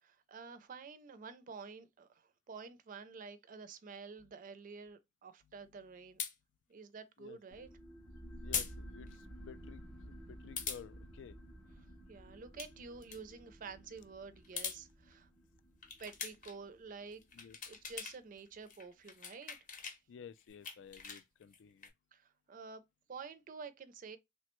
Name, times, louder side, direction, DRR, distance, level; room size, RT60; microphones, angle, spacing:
voice 1, 0.0-6.2 6.7-7.7 12.1-15.3 16.0-17.2 17.7-19.6 22.1-22.8 23.1-24.2, right 5 dB, 45° right, 0.4 m, -50 dB
sound 1, 6.2-6.3 8.5-8.7 9.1-9.2 10.6-10.8 12.4-12.7 13.0-13.2 14.4-14.8 15.8-16.6 17.1-18.2 18.5-20.0 20.4-21.9, left 6 dB, 45° left, 0.7 m, -41 dB
sound 2, 7.5-18.6, equal, 5° left, 0.6 m, -53 dB
voice 2, 8.4-9.1 9.5-9.8 10.3-11.4 17.3-17.6 20.1-21.9, left 7 dB, 70° left, 0.3 m, -53 dB
3.2 x 2.1 x 2.9 m
head